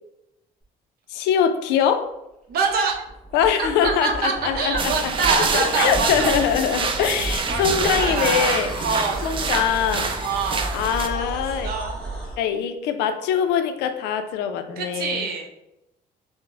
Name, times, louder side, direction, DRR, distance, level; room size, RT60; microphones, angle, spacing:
voice 1, 1.1-2.1 3.3-8.7 9.2-10.1 10.7-11.7 12.4-15.3, left 8 dB, 85° left, 8 dB, 0.4 m, -23 dB
sound 1, 2.5-12.4, right 2 dB, 5° left, 1.5 m, -33 dB
voice 2, 2.5-2.9 3.6-6.3 7.5-8.5 8.8-9.8 10.2-10.8 11.1-12.2 14.8-15.5, right 4 dB, 65° right, 3 dB, 0.7 m, -26 dB
sound 2, 4.8-11.1, right 5 dB, 30° right, 0.4 m, -26 dB
4.7 x 2.0 x 2.5 m, 0.88 s
cardioid pair, 110°, 17 cm